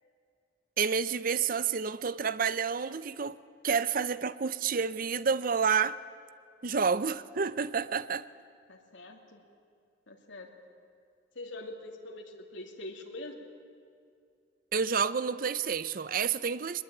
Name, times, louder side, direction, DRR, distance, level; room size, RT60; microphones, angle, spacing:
voice 1, 0.8-3.4 3.6-6.0 6.6-8.3 14.7-16.8, right 6 dB, 45° right, 0.6 m, -29 dB
voice 2, 8.7-9.4 10.1-10.5 11.3-13.5, left 2 dB, 80° left, 2.7 m, -44 dB
21.5 x 21.0 x 8.9 m
head